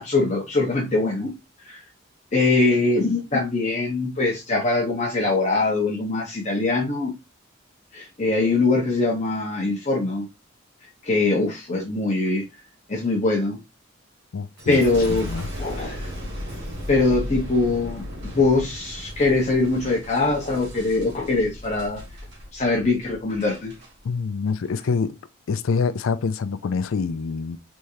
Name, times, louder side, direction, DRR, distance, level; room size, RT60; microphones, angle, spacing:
voice 1, 0.0-1.8 2.3-7.1 7.9-10.3 11.0-12.4 12.9-13.6 14.7-15.3 15.6-16.1 16.9-18.0 18.3-22.0 22.5-23.7, left 3 dB, 35° left, 0.8 m, -22 dB
voice 2, 14.3-14.8 15.1-15.5 24.0-25.1 25.5-27.6, left 5 dB, 85° left, 0.4 m, -26 dB
Boom, 14.6-23.9 24.5-24.9, equal, 55° right, 1.7 m, -36 dB
3.5 x 3.2 x 2.7 m
head